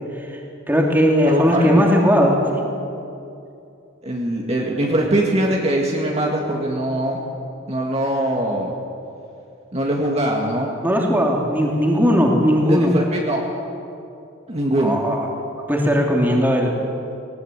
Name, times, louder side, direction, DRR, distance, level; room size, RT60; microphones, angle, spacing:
voice 1, 0.7-2.6 10.8-12.9 14.8-15.3 15.7-16.7, equal, 10° right, -1 dB, 2.8 m, -18 dB
voice 2, 1.3-1.9 4.0-7.2 7.7-8.7 9.7-10.7 12.7-13.4 14.5-15.0, right 1 dB, 30° right, -1 dB, 2.1 m, -22 dB
19.0 x 19.0 x 8.2 m, 2.6 s
head